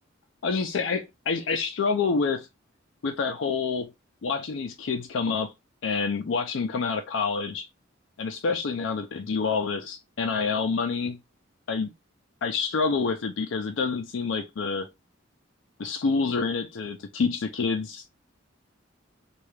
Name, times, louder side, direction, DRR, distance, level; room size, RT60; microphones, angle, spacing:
voice 1, 0.4-2.5 3.0-3.9 4.2-5.5 5.8-7.7 8.2-11.2 11.7-11.9 12.4-14.9 15.8-18.0, left 4 dB, 70° left, 0.4 m, -27 dB
2.8 x 2.3 x 3.2 m
head